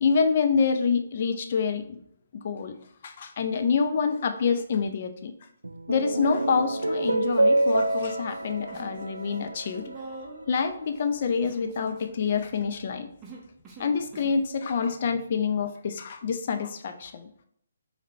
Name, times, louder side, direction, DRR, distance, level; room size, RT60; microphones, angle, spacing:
voice 1, 0.0-2.0 2.4-2.7 3.0-5.3 5.9-9.8 10.5-13.1 13.8-17.3, left 5 dB, 45° left, 7 dB, 0.5 m, -27 dB
sound 1, 5.6-10.2, right 2 dB, 75° right, 0.3 m, -27 dB
Human voice, 7.0-8.0 8.2-9.0 9.2-14.4, right 3 dB, 15° right, 0.8 m, -46 dB
4.8 x 3.3 x 2.9 m, 0.69 s
figure-of-eight pair, 135°, 0 cm